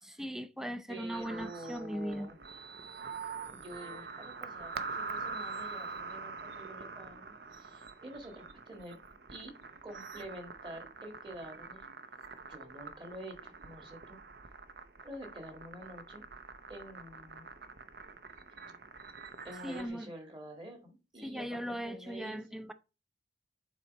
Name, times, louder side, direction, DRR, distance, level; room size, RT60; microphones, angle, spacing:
voice 1, 0.0-2.3 19.6-20.1 21.2-22.7, equal, ahead, 0.4 m, -39 dB
voice 2, 0.9-2.4 3.5-9.0 9.3-9.5 9.8-11.9 12.4-14.2 15.0-16.2 16.7-17.5 19.4-22.6, right 1 dB, 30° right, 1.8 m, -48 dB
sound 1, 1.1-19.9, right 4 dB, 60° right, 0.7 m, -45 dB
7.3 x 4.4 x 4.1 m
head